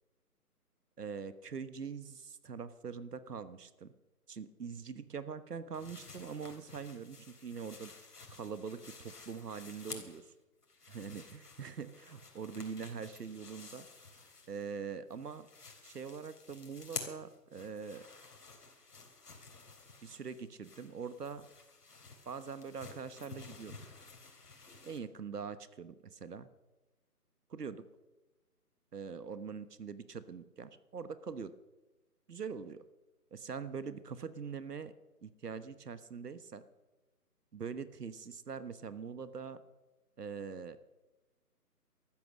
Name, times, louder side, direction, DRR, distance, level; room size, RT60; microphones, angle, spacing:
voice 1, 1.0-3.9 4.3-7.9 8.3-10.2 10.9-13.9 14.5-15.5 15.8-18.0 20.0-21.5 22.3-23.8 24.8-26.5 27.5-27.8 28.9-31.5 32.3-32.8 33.3-34.9 35.2-36.6 37.5-39.6 40.2-40.8, right 6 dB, 75° right, 13 dB, 1.3 m, -43 dB
sound 1, 5.7-10.3 10.6-14.8 15.1-25.0, left 3 dB, 70° left, 3.9 m, -51 dB
14.0 x 13.5 x 6.5 m, 1.1 s
hypercardioid pair, 165°, 48 cm